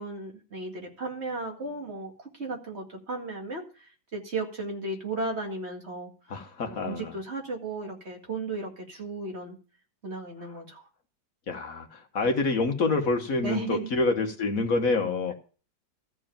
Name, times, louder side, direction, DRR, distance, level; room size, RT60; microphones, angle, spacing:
voice 1, 0.0-6.1 6.6-9.6 10.0-10.8 13.4-13.9, right 3 dB, 40° right, 1 dB, 2.3 m, -35 dB
voice 2, 6.3-7.1 11.5-15.3, left 3 dB, 55° left, 5 dB, 1.5 m, -27 dB
14.0 x 4.7 x 8.9 m, 0.38 s
omnidirectional pair, 1.8 m